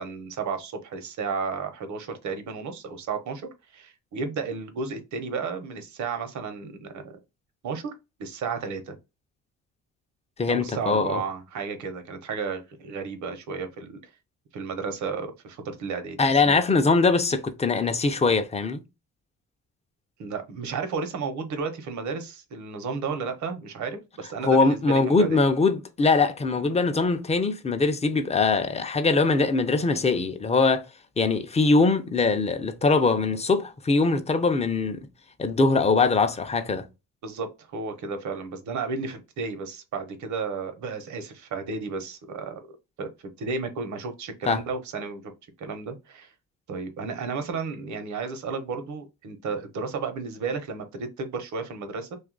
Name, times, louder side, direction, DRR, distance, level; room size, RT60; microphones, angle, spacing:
voice 1, 0.0-7.2 7.6-7.9 8.2-9.0 10.5-14.1 14.5-16.2 16.4-16.6 20.2-25.4 37.2-45.2 45.6-46.3 46.7-52.2, right 5 dB, 70° right, 0.9 m, -33 dB
voice 2, 10.4-11.2 16.2-18.8 24.4-30.9 31.2-35.1 35.4-36.9 44.5-44.6, left 3 dB, 20° left, 0.6 m, -22 dB
2.7 x 2.5 x 3.8 m
cardioid pair, 90°, 30 cm